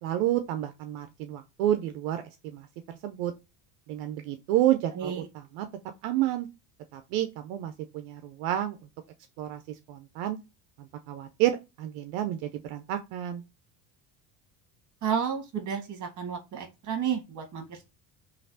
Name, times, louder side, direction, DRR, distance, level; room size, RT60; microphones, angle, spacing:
voice 1, 0.0-3.3 3.9-5.7 6.0-6.5 6.9-8.8 9.4-10.4 10.8-13.4, right 13 dB, 70° right, 8 dB, 0.6 m, -30 dB
voice 2, 4.9-5.3 15.0-17.9, right 7 dB, 40° right, 3 dB, 1.5 m, -32 dB
3.2 x 2.6 x 2.5 m, 0.26 s
supercardioid pair, 90°, 47 cm